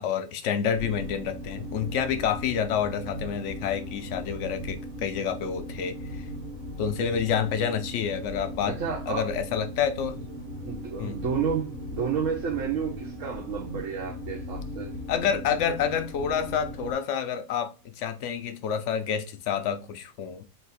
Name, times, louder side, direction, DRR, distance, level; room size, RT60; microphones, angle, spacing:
voice 1, 0.0-6.3 6.8-8.8 9.1-10.3 11.0-11.2 15.1-20.4, left 7 dB, 70° left, 0.9 m, -28 dB
sound 1, 0.7-16.9, equal, 90° right, 1.9 m, -38 dB
voice 2, 8.7-9.3 10.6-14.9, right 7 dB, 70° right, 1.2 m, -31 dB
4.0 x 2.7 x 3.9 m
omnidirectional pair, 1.4 m